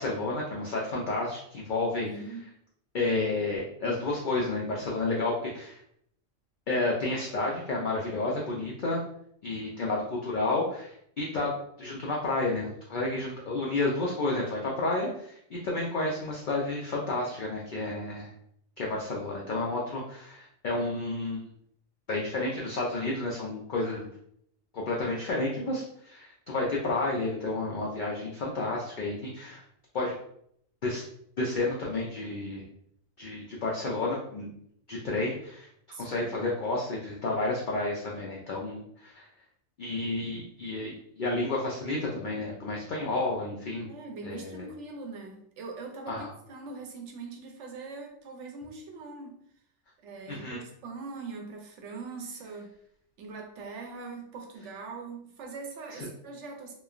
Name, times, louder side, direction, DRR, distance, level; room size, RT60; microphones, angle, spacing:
voice 1, 0.0-2.1 2.9-5.8 6.7-9.0 9.4-11.5 11.8-18.3 18.8-21.4 22.1-24.1 24.7-29.6 29.9-30.1 30.8-31.0 31.4-32.6 33.2-34.5 34.9-35.7 36.0-39.3 39.8-43.9 44.2-44.7 46.1-46.3 50.3-50.6, left 2 dB, 65° left, -3 dB, 0.4 m, -31 dB
voice 2, 2.1-2.5 35.9-36.5 43.9-49.4 50.0-52.7 53.2-56.7, right 4 dB, 65° right, 2 dB, 0.8 m, -42 dB
3.1 x 2.2 x 2.4 m, 0.70 s
omnidirectional pair, 1.4 m